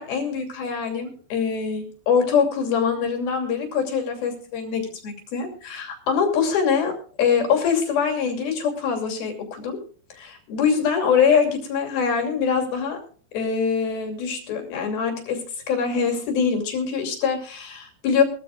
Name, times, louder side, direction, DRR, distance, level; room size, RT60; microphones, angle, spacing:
voice 1, 0.0-6.9 7.2-9.8 10.1-13.0 13.3-15.4 15.7-18.2, left 6 dB, 60° left, 3 dB, 4.2 m, -23 dB
22.0 x 14.5 x 2.4 m, 0.43 s
omnidirectional pair, 5.2 m